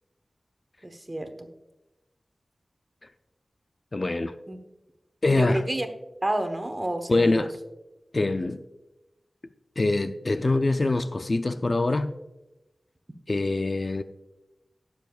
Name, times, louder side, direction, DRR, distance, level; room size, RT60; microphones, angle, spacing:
voice 1, 0.8-1.5 4.5-4.6 5.3-5.9 6.2-7.5, right 1 dB, 25° right, 1.1 m, -30 dB
voice 2, 3.9-4.3 5.2-5.6 7.1-7.5 8.1-8.6 9.8-12.1 13.3-14.0, left 2 dB, 40° left, 0.4 m, -24 dB
18.5 x 7.1 x 2.4 m
wide cardioid pair, 80°, 0 cm